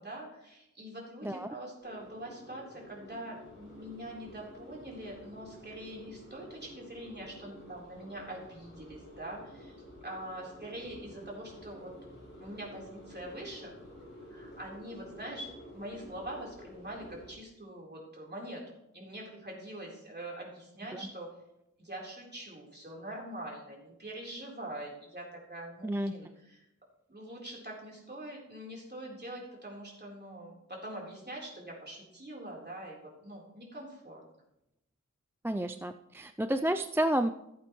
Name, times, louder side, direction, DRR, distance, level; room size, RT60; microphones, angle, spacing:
voice 1, 0.0-9.8 10.0-11.9 12.4-13.7 14.3-18.6 18.9-21.3 21.8-26.6 27.1-34.2, right 1 dB, 35° right, -3 dB, 3.7 m, -44 dB
voice 2, 1.2-1.5 20.9-21.0 25.8-26.1 35.4-37.3, right 1 dB, 10° right, 8 dB, 0.3 m, -30 dB
sound 1, 1.8-17.3, left 1 dB, 35° left, 4.9 m, -51 dB
15.5 x 8.5 x 3.1 m, 0.85 s
wide cardioid pair, 85°, 31 cm